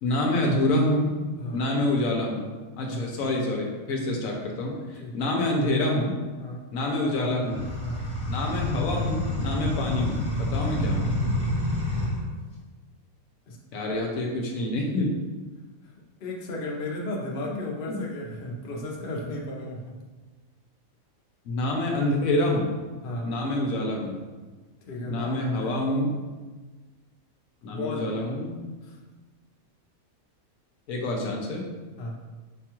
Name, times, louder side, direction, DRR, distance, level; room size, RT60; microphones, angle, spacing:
voice 1, 0.0-1.1 1.5-2.4 2.8-6.1 6.7-7.6 8.3-11.1 13.7-15.1 17.5-18.0 21.5-22.7 23.2-24.2 25.1-26.2 27.6-28.6 30.9-31.6, left 1 dB, 75° left, 0 dB, 1.0 m, -27 dB
sound 1, 7.5-12.2, left 1 dB, 20° left, 1.0 m, -28 dB
voice 2, 16.2-19.8 23.0-23.3 24.9-26.1 27.7-28.1 28.9-29.0 32.0-32.2, left 1 dB, 50° left, -2 dB, 0.7 m, -34 dB
5.2 x 2.3 x 2.9 m, 1.3 s
omnidirectional pair, 1.5 m